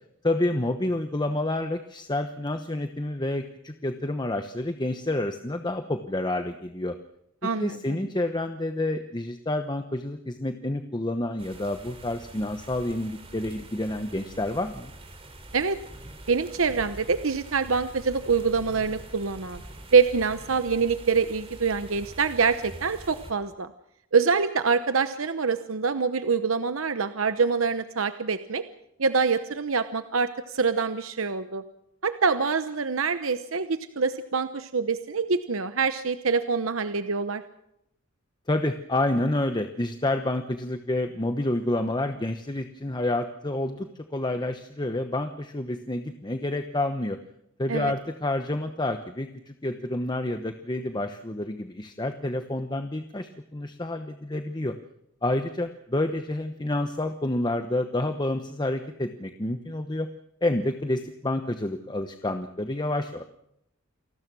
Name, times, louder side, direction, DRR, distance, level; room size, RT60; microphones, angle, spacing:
voice 1, 0.2-6.9 7.6-14.9 38.5-47.2 47.6-54.7 55.2-60.1 60.4-63.2, left 1 dB, 20° left, 7 dB, 1.0 m, -29 dB
voice 2, 7.4-8.0 15.5-15.8 16.3-19.6 19.9-23.7 24.1-28.6 29.0-31.6 32.0-37.4 47.7-47.9, right 5 dB, 80° right, 10 dB, 1.0 m, -25 dB
sound 1, 11.4-23.3, right 1 dB, 30° right, 3.6 m, -45 dB
28.5 x 19.5 x 6.2 m, 0.79 s
head